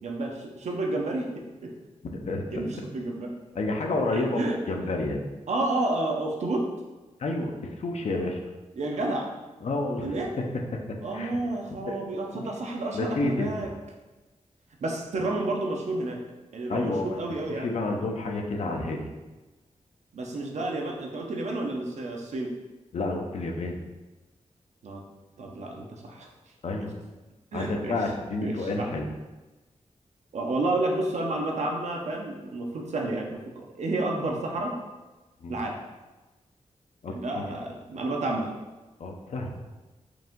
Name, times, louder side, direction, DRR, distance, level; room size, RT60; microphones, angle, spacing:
voice 1, 0.0-1.7 2.5-3.3 4.1-4.6 5.5-6.7 8.7-9.3 10.0-10.3 11.0-13.7 14.8-16.2 16.5-17.7 20.1-22.5 24.8-25.0 25.4-26.3 27.5-28.0 28.4-28.9 30.3-34.7 35.5-35.8 37.1-38.5, right 2 dB, 70° right, 1 dB, 0.7 m, -30 dB
voice 2, 2.0-2.8 3.5-5.2 7.2-8.4 9.6-10.1 10.7-10.8 11.1-11.4 11.7-12.0 12.3-12.4 12.9-13.5 16.7-17.1 17.5-19.1 22.9-23.8 26.6-26.9 27.5-29.1 35.4-35.6 37.0-37.5 39.0-39.5, left 2 dB, 65° left, 2 dB, 0.6 m, -30 dB
4.7 x 2.6 x 3.7 m, 1.2 s
wide cardioid pair, 160°, 12 cm